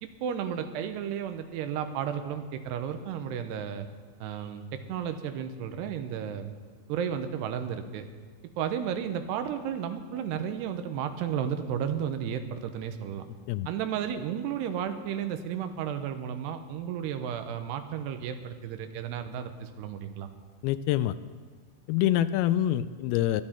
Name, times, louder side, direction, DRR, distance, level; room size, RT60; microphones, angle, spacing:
voice 1, 0.0-3.9 4.2-6.5 6.9-8.1 8.6-13.3 13.7-20.3, right 8 dB, 85° right, 8 dB, 2.9 m, -33 dB
voice 2, 20.6-21.1 21.9-23.4, left 12 dB, 85° left, 13 dB, 2.2 m, -25 dB
21.0 x 11.0 x 4.4 m, 1.5 s
omnidirectional pair, 4.8 m